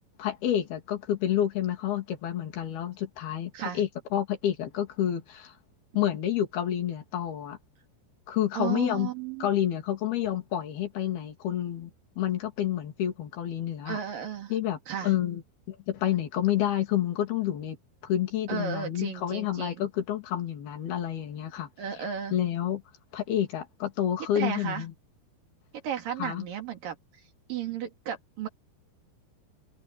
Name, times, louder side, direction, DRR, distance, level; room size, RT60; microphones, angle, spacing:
voice 1, 0.2-5.5 5.9-7.6 8.3-9.1 9.4-11.9 12.2-14.0 14.5-15.4 15.7-17.8 18.0-21.7 22.3-22.8 23.1-24.9 26.2-26.4, left 11 dB, 65° left, 4.7 m, -29 dB
voice 2, 8.5-9.5 13.9-14.5 14.9-15.1 18.5-19.7 21.8-22.3 24.4-24.8 25.8-27.0 27.5-28.5, right 8 dB, 55° right, 4.0 m, -34 dB
omnidirectional pair, 5.0 m